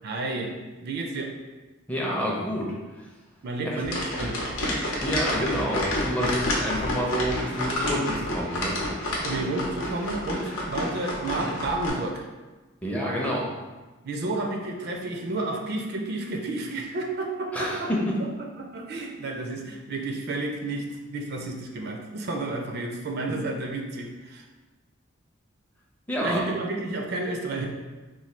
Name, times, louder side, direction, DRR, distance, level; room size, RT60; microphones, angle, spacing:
voice 1, 0.0-0.5 0.8-1.3 3.4-4.4 9.2-12.3 14.0-17.9 18.6-24.4 26.2-27.7, right 2 dB, 50° right, 2 dB, 0.4 m, -31 dB
voice 2, 1.9-3.1 3.6-3.8 5.0-9.3 12.8-13.5 17.5-18.2 26.1-26.5, equal, 5° left, -3 dB, 0.5 m, -28 dB
sound 1, 3.8-11.9, left 1 dB, 85° left, 0.8 m, -29 dB
3.1 x 2.1 x 4.1 m, 1.2 s
head